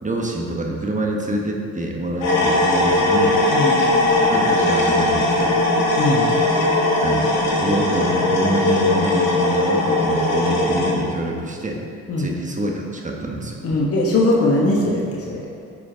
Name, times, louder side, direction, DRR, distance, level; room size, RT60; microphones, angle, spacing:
voice 1, 0.0-3.4 4.3-5.5 7.0-7.3 7.6-11.8 12.2-13.6, right 1 dB, 25° right, 0 dB, 1.2 m, -26 dB
sound 1, 2.2-10.9, left 2 dB, 80° left, 1.7 m, -19 dB
voice 2, 6.0-6.3 12.1-12.3 13.6-15.4, left 2 dB, 45° left, -3 dB, 1.3 m, -20 dB
9.5 x 5.0 x 3.9 m, 2.3 s
supercardioid pair, 75°, 33 cm